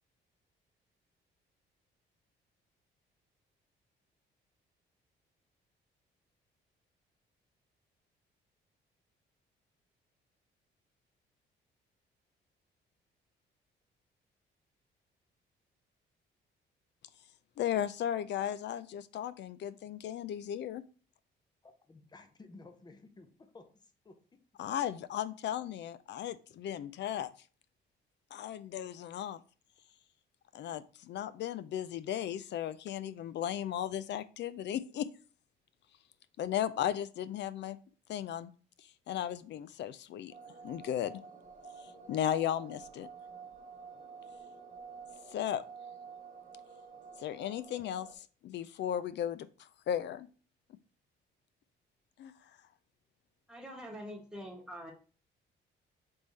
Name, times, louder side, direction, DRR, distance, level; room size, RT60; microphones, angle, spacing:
voice 1, 17.6-20.8 24.6-27.3 28.3-29.4 30.5-35.1 36.4-37.8 38.1-38.5 38.8-40.3 40.6-41.2 42.1-43.1 45.3-45.6 47.2-50.3 52.2-52.3, left 10 dB, 60° left, 15 dB, 0.4 m, -36 dB
voice 2, 21.6-24.1, left 3 dB, 20° left, 6 dB, 0.7 m, -55 dB
sound 1, 40.3-48.2, right 5 dB, 40° right, 1.0 m, -50 dB
voice 3, 53.5-54.9, equal, 5° right, -1 dB, 1.3 m, -45 dB
3.5 x 3.4 x 4.0 m, 0.38 s
cardioid pair, 90°, 20 cm